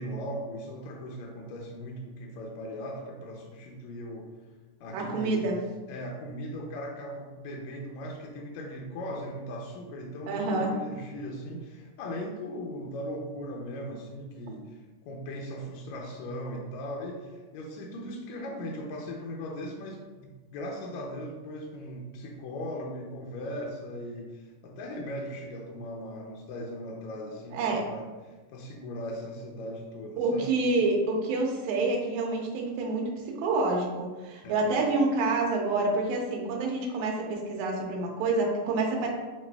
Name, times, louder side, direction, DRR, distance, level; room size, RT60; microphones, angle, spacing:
voice 1, 0.0-4.3 4.8-5.5 5.9-14.8 15.0-30.5 34.4-34.6, equal, 80° left, -1 dB, 1.7 m, -38 dB
voice 2, 4.9-5.6 10.3-10.7 27.5-27.8 30.2-39.1, right 3 dB, 75° right, 0 dB, 2.0 m, -27 dB
7.1 x 2.4 x 2.2 m, 1.2 s
omnidirectional pair, 3.6 m